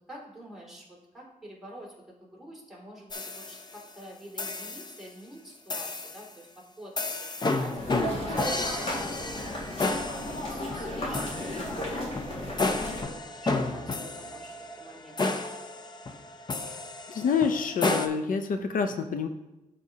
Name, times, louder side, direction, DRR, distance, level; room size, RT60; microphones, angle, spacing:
voice 1, 0.1-1.9 2.2-6.9 7.4-15.4, right 1 dB, 5° right, -5 dB, 2.5 m, -48 dB
sound 1, 3.1-3.9 4.4-5.0 5.7-6.3 7.0-18.1, left 3 dB, 30° left, 0.6 m, -32 dB
sound 2, 7.7-13.0, left 1 dB, 45° left, 1.9 m, -34 dB
voice 2, 17.1-19.3, left 6 dB, 80° left, 8 dB, 0.5 m, -27 dB
12.5 x 4.1 x 2.8 m, 1.0 s
wide cardioid pair, 120°, 14 cm